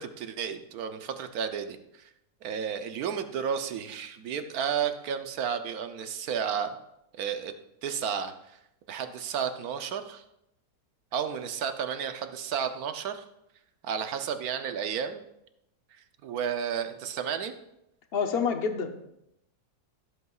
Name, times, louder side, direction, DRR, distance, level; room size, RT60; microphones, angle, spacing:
voice 1, 0.0-2.1 2.4-6.7 7.2-7.5 7.8-8.3 8.9-10.2 11.1-13.2 13.8-15.2 16.2-17.5, right 7 dB, 70° right, 8 dB, 1.2 m, -32 dB
voice 2, 18.1-19.0, left 6 dB, 45° left, 6 dB, 0.9 m, -28 dB
14.0 x 7.9 x 2.4 m, 0.82 s
omnidirectional pair, 1.7 m